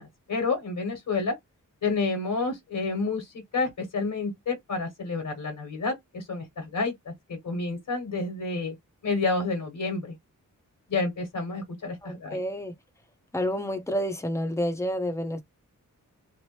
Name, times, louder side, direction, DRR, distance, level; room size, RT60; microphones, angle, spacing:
voice 1, 0.0-1.3 1.8-8.7 9.0-10.1 10.9-12.4, left 3 dB, 65° left, 1.4 m, -29 dB
voice 2, 12.0-12.7 13.3-15.4, equal, 10° left, 0.8 m, -29 dB
3.0 x 2.0 x 3.2 m
wide cardioid pair, 80°, 34 cm